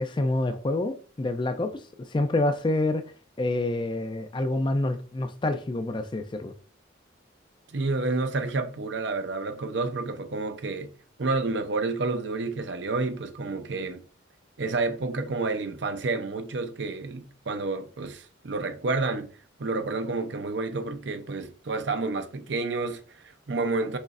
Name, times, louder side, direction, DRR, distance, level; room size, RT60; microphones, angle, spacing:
voice 1, 0.0-1.8 2.1-3.0 3.4-6.5, left 2 dB, 25° left, 0.4 m, -27 dB
voice 2, 7.7-10.9 11.2-14.0 14.6-19.3 19.6-24.0, right 3 dB, 70° right, 0.6 m, -29 dB
6.4 x 3.1 x 2.5 m
head